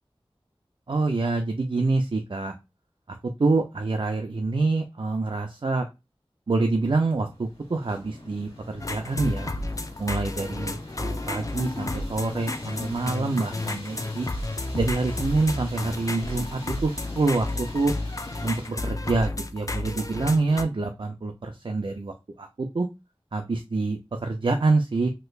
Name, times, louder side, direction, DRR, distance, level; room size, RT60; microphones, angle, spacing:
voice 1, 0.9-2.6 3.4-5.9 6.5-9.5 10.0-14.3 14.7-17.9 18.4-22.9 23.3-25.1, right 3 dB, 55° right, 5 dB, 0.5 m, -26 dB
sound 1, 7.3-18.7, left 1 dB, 75° left, 1.6 m, -43 dB
sound 2, 8.8-20.6, left 2 dB, 35° left, 0.4 m, -32 dB
3.2 x 2.9 x 2.3 m, 0.24 s
wide cardioid pair, 50°, 10 cm